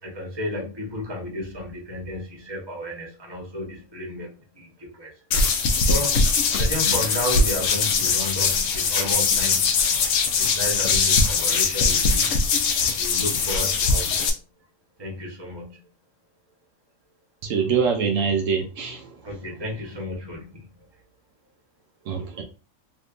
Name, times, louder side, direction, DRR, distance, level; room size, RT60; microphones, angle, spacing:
voice 1, 0.0-5.2 5.9-6.3 6.6-9.7 10.3-12.4 13.0-14.3 15.0-15.8 19.2-20.7, left 1 dB, 20° right, 1.1 m, -33 dB
sound 1, 5.3-14.3, left 4 dB, 75° left, 1.0 m, -21 dB
voice 2, 17.4-19.2 22.1-22.4, right 6 dB, 75° right, 0.9 m, -24 dB
3.4 x 2.8 x 2.5 m
omnidirectional pair, 1.4 m